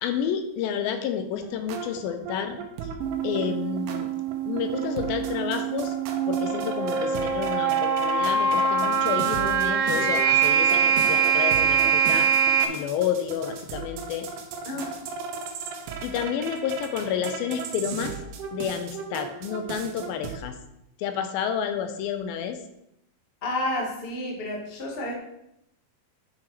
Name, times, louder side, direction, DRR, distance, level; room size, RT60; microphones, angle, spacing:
voice 1, 0.0-2.6 3.2-4.1 4.4-5.9 6.3-12.3 12.7-14.3 16.0-18.1 18.5-20.6 21.0-22.6, left 8 dB, 80° left, 8 dB, 2.4 m, -30 dB
sound 1, 1.4-20.4, right 5 dB, 85° right, 3.1 m, -37 dB
sound 2, 3.0-12.6, right 6 dB, 70° right, 2.4 m, -24 dB
voice 2, 14.6-14.9 23.4-25.1, left 1 dB, 40° left, -1 dB, 0.8 m, -30 dB
9.7 x 6.2 x 4.6 m, 0.80 s
omnidirectional pair, 4.4 m